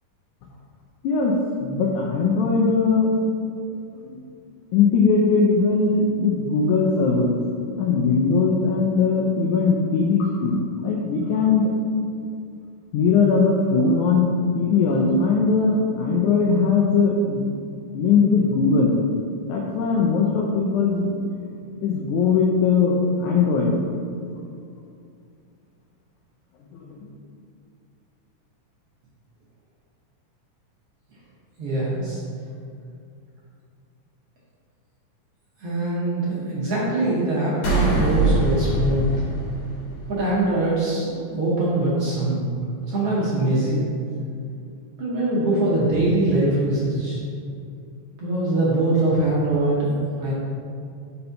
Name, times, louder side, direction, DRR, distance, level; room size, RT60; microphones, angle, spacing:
voice 1, 1.0-3.1 4.0-4.2 4.7-7.4 7.8-11.7 12.9-17.4 17.9-19.0 19.5-21.2 21.8-23.8 26.7-27.1, left 4 dB, 85° left, -1 dB, 1.7 m, -20 dB
voice 2, 31.6-32.2 35.6-39.2 40.1-42.5 42.9-43.8 45.0-47.2 48.2-50.3, right 2 dB, 70° right, -7 dB, 1.4 m, -22 dB
sound 1, 37.6-40.2, right 2 dB, 55° left, 1.9 m, -22 dB
5.3 x 4.2 x 5.6 m, 2.4 s
omnidirectional pair, 4.0 m